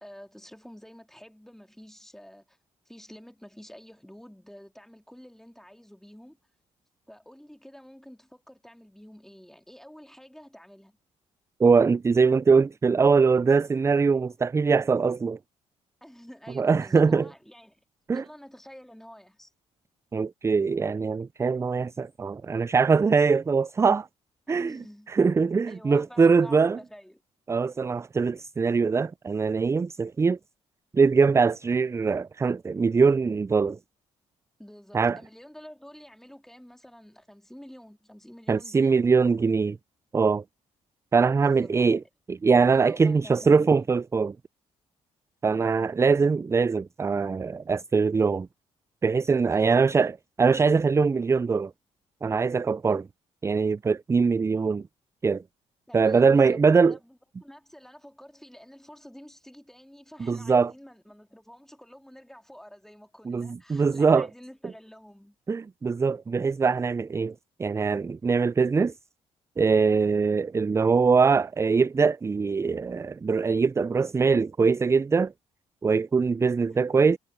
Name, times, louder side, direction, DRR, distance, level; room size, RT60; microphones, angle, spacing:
voice 1, 0.0-2.6 2.8-6.4 7.1-11.0 16.0-17.8 18.1-19.5 24.5-25.1 25.4-27.2 34.6-39.0 41.4-42.0 42.7-43.9 49.5-49.9 55.9-65.4 76.7-76.9, equal, 5° left, 2.6 m, -49 dB
voice 2, 11.6-15.4 16.6-17.2 18.1-18.2 20.1-24.1 24.5-24.7 25.1-26.8 27.5-30.4 30.9-33.8 34.9-35.2 38.5-39.8 40.1-40.4 41.1-42.0 42.3-44.3 45.4-48.5 49.0-50.1 50.4-51.7 52.2-53.1 53.4-54.8 55.2-55.4 55.9-57.0 60.2-60.7 63.3-64.3 65.5-67.3 67.6-68.9 69.6-75.3 75.8-77.2, right 5 dB, 20° right, 0.3 m, -22 dB
supercardioid pair, 55°, 13 cm